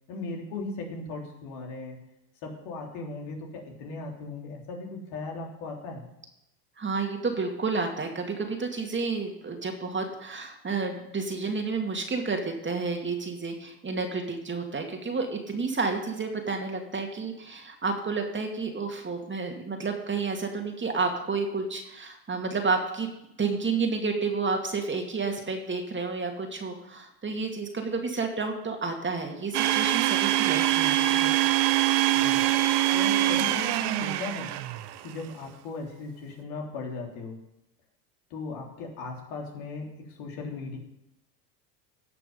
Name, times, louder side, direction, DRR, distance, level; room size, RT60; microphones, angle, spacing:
voice 1, 0.1-2.0 2.4-6.1 32.1-32.6 32.9-34.5 35.0-37.4 38.3-40.8, left 3 dB, 70° left, 0 dB, 3.4 m, -37 dB
voice 2, 6.8-23.1 23.4-31.4, right 4 dB, 25° right, 3 dB, 2.3 m, -30 dB
Domestic sounds home sounds, 29.5-35.0, right 14 dB, 55° right, 0.9 m, -24 dB
17.5 x 5.9 x 5.4 m, 0.84 s
hypercardioid pair, 80°, 49 cm